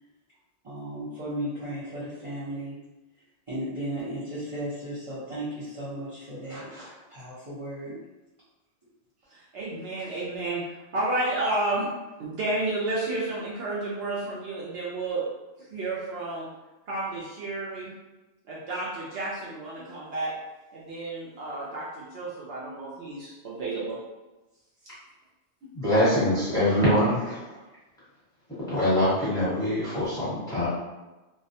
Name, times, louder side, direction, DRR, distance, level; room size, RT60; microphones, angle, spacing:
voice 1, 0.6-2.8 3.5-8.0, right 1 dB, 35° right, -12 dB, 0.7 m, -35 dB
voice 2, 9.3-10.6 10.9-11.9 12.2-15.2 15.6-16.5 16.9-17.9 18.5-20.3 20.7-24.0, right 2 dB, 70° right, -6 dB, 0.8 m, -31 dB
voice 3, 25.7-27.4 28.7-30.7, left 1 dB, 5° left, -11 dB, 1.1 m, -23 dB
2.3 x 2.1 x 2.6 m, 1.1 s
omnidirectional pair, 1.1 m